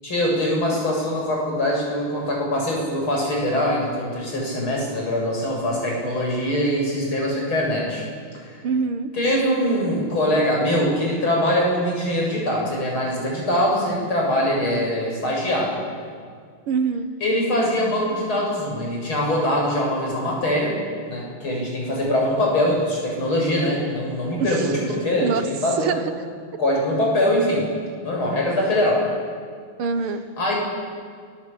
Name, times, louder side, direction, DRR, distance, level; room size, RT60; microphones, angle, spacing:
voice 1, 0.0-8.1 8.3-8.5 9.1-15.8 17.2-20.8 21.1-26.0 26.6-27.6 28.0-29.0 30.4-30.5, left 1 dB, 70° left, -2 dB, 8.5 m, -23 dB
voice 2, 8.6-9.1 16.7-17.1 24.4-24.6 25.2-25.4 25.8-26.0 29.8-30.3, right 5 dB, 80° right, 10 dB, 2.2 m, -24 dB
28.5 x 21.5 x 8.7 m, 2.1 s
omnidirectional pair, 2.3 m